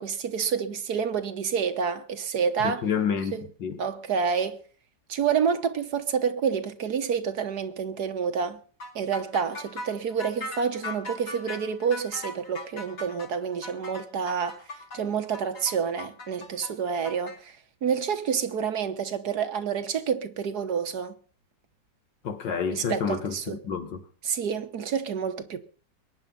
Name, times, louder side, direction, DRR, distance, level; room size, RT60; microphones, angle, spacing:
voice 1, 0.0-2.9 3.3-3.4 3.8-4.6 5.1-8.6 8.9-14.6 14.9-21.1 22.7-23.6 24.2-25.6, right 7 dB, 60° right, 1.6 m, -28 dB
voice 2, 2.6-3.8 22.2-24.1, left 6 dB, 80° left, 2.3 m, -29 dB
sound 1, 8.8-17.4, left 2 dB, 60° left, 3.1 m, -39 dB
22.0 x 9.5 x 5.6 m
omnidirectional pair, 2.0 m